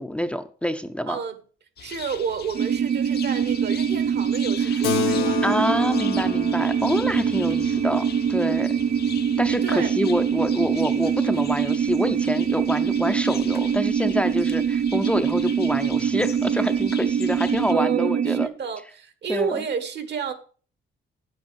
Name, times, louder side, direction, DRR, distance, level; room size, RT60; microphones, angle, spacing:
voice 1, 0.0-1.2 5.4-8.7 9.4-18.5 19.3-19.6, equal, 5° left, 0.7 m, -26 dB
voice 2, 1.1-1.4 1.8-5.4 9.6-9.9 17.7-20.3, right 6 dB, 60° right, 1.6 m, -30 dB
sound 1, 1.8-17.7, left 8 dB, 55° left, 1.0 m, -41 dB
sound 2, 2.5-18.5, right 7 dB, 40° right, 0.5 m, -24 dB
Keyboard (musical), 4.8-9.7, left 7 dB, 90° left, 1.1 m, -31 dB
8.9 x 8.0 x 5.2 m
cardioid pair, 90°, 20 cm